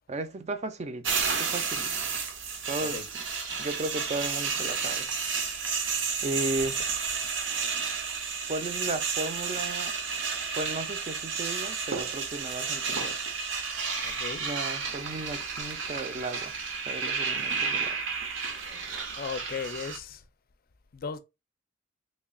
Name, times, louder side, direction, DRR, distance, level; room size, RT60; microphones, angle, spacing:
voice 1, 0.1-1.9 2.7-3.0 3.6-5.1 6.2-6.8 8.5-9.9 10.6-13.2 14.4-16.5 16.9-18.0, right 2 dB, 35° right, 0.5 m, -35 dB
sound 1, 1.0-20.0, right 5 dB, 70° right, 0.7 m, -31 dB
voice 2, 14.0-14.4 19.2-20.2 20.9-21.2, left 5 dB, 50° left, 0.4 m, -36 dB
3.2 x 2.3 x 3.6 m
head